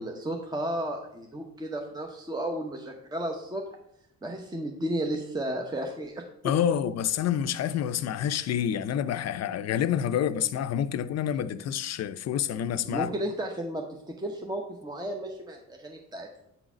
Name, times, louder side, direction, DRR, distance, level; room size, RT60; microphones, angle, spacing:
voice 1, 0.0-3.6 4.2-6.2 12.8-13.8 14.2-16.3, right 1 dB, 15° right, 0.8 m, -33 dB
voice 2, 6.4-13.1, left 9 dB, 60° left, 0.5 m, -28 dB
8.2 x 3.9 x 4.9 m
cardioid pair, 90°, 30 cm